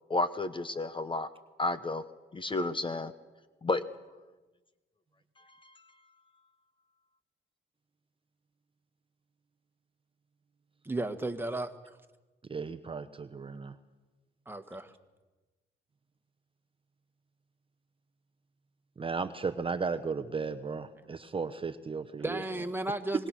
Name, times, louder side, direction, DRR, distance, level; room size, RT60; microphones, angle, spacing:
voice 1, 0.1-1.3 1.6-2.0 2.3-3.1 3.6-3.8, left 2 dB, 25° left, 13 dB, 0.9 m, -31 dB
voice 2, 10.8-11.7 14.5-14.9 22.2-23.3, right 2 dB, 10° right, 7 dB, 1.7 m, -34 dB
voice 3, 12.5-13.7 19.0-22.4, right 5 dB, 25° right, 10 dB, 0.9 m, -35 dB
24.5 x 20.5 x 6.3 m, 1.2 s
cardioid pair, 90°, 20 cm